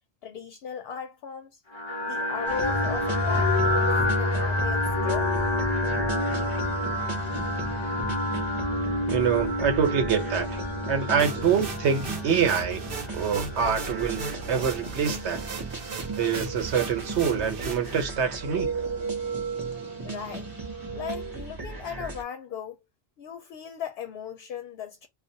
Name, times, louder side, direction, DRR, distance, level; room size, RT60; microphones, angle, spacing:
voice 1, 0.2-1.6 2.0-3.9 4.2-5.4 20.0-20.5 20.9-22.8 23.2-25.1, left 7 dB, 70° left, 0.7 m, -37 dB
sound 1, 1.7-21.4, left 1 dB, 50° left, 0.3 m, -29 dB
sound 2, 2.5-22.2, right 3 dB, 25° right, 0.5 m, -38 dB
voice 2, 9.1-10.5 10.9-12.8 13.1-15.5 16.1-18.9, right 7 dB, 80° right, 1.1 m, -25 dB
sound 3, 11.2-18.0, right 4 dB, 60° right, 0.8 m, -38 dB
2.4 x 2.1 x 2.6 m
omnidirectional pair, 1.1 m